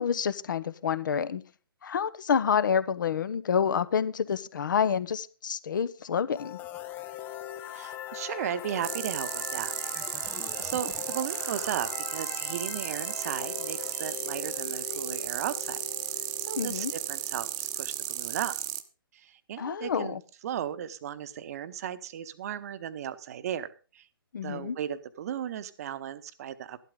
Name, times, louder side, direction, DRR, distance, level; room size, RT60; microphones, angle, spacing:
voice 1, 0.0-1.4 1.8-6.6 16.6-16.9 19.6-20.2 24.3-24.8, left 7 dB, 55° left, 1.0 m, -28 dB
sound 1, 6.3-18.2, left 11 dB, 15° left, 0.5 m, -41 dB
voice 2, 7.7-9.7 10.2-15.8 16.4-18.5 19.1-20.2 20.4-24.0 24.4-26.8, right 10 dB, 40° right, 1.0 m, -36 dB
sound 2, 8.8-18.8, right 14 dB, 25° right, 0.9 m, -34 dB
13.0 x 12.0 x 3.8 m
figure-of-eight pair, 130°, 12 cm